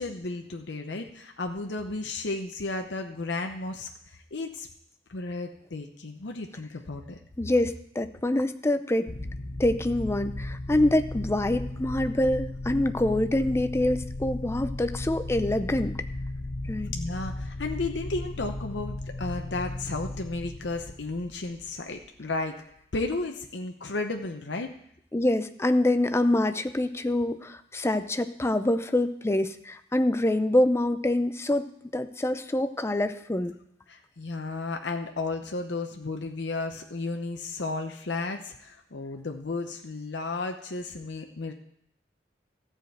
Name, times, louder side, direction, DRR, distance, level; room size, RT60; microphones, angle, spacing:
voice 1, 0.0-4.7 5.1-7.2 16.8-22.6 22.9-24.7 33.9-41.5, left 3 dB, 80° left, 4 dB, 0.8 m, -33 dB
voice 2, 7.4-9.2 9.6-16.0 16.7-16.9 25.1-33.5, left 1 dB, 15° left, 10 dB, 0.5 m, -25 dB
sound 1, 9.1-22.1, left 2 dB, 45° left, 0.8 m, -35 dB
14.0 x 5.1 x 7.8 m, 0.72 s
head